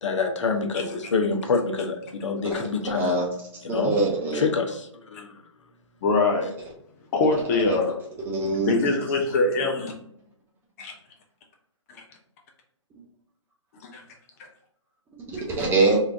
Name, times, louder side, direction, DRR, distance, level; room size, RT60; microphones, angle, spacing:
voice 1, 0.0-2.0 2.2-3.1 3.7-3.9 4.5-4.7 5.1-5.3, left 4 dB, 65° left, 3 dB, 0.8 m, -26 dB
voice 2, 2.4-3.3 3.7-4.5 7.7-7.8 8.3-8.7 15.3-16.0, right 3 dB, 10° right, -3 dB, 0.9 m, -24 dB
voice 3, 6.0-6.5 7.1-8.0 8.7-9.9 10.8-10.9 13.8-14.0, left 3 dB, 30° left, 1 dB, 0.7 m, -23 dB
3.4 x 3.2 x 2.5 m, 0.76 s
figure-of-eight pair, 135°, 16 cm